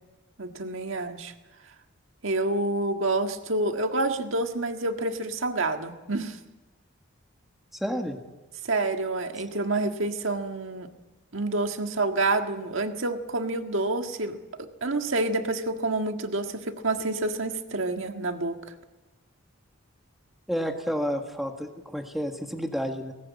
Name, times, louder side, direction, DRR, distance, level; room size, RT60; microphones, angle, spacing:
voice 1, 0.4-1.3 2.2-6.4 8.6-10.9 11.3-14.4 14.8-18.6, right 2 dB, 70° right, 6 dB, 1.7 m, -28 dB
voice 2, 7.7-8.2 20.5-23.1, equal, ahead, 3 dB, 1.7 m, -30 dB
19.5 x 17.5 x 8.4 m, 1.1 s
head